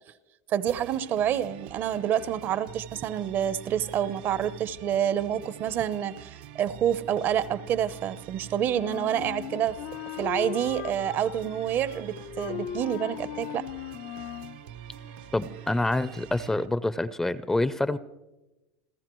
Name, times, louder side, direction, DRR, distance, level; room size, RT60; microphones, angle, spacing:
voice 1, 0.5-9.8 10.2-13.7, right 10 dB, 45° right, 0.7 m, -28 dB
sound 1, 0.7-16.7, right 11 dB, 75° right, 0.8 m, -45 dB
Wind instrument woodwind instrument, 8.7-14.6, left 12 dB, 65° left, 0.6 m, -38 dB
Wind instrument woodwind instrument 2, 9.7-15.7, left 3 dB, 85° left, 6.4 m, -56 dB
voice 2, 15.3-18.0, left 2 dB, 10° left, 0.5 m, -27 dB
29.5 x 14.0 x 3.1 m
supercardioid pair, 130°, 5 cm